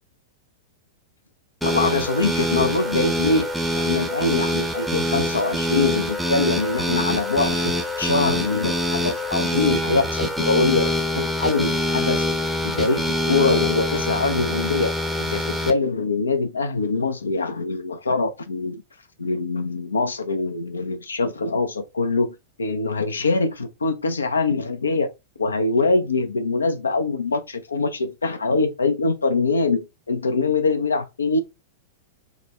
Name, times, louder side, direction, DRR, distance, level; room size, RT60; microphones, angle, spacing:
voice 1, 1.6-3.5 3.7-12.3 12.6-14.9 15.2-18.8 19.2-25.1 25.4-31.4, left 3 dB, 75° left, 0.4 m, -23 dB
sound 1, 1.6-15.7, left 1 dB, ahead, 0.6 m, -25 dB
3.6 x 2.1 x 3.0 m
figure-of-eight pair, 95°, 0 cm